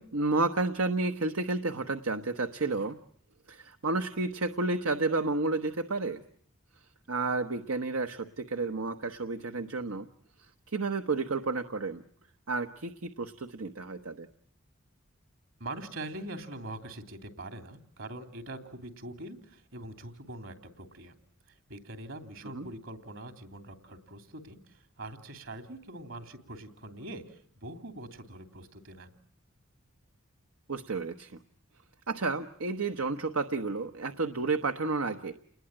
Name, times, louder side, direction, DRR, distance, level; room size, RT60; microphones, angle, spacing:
voice 1, 0.0-3.0 3.5-6.2 7.1-10.1 10.7-12.0 12.5-14.3 22.5-22.7 30.7-31.3 32.1-35.3, right 3 dB, 85° right, 7 dB, 1.1 m, -31 dB
voice 2, 15.6-21.1 21.5-29.1, right 1 dB, 65° right, 7 dB, 3.1 m, -43 dB
29.5 x 20.5 x 8.9 m, 0.62 s
head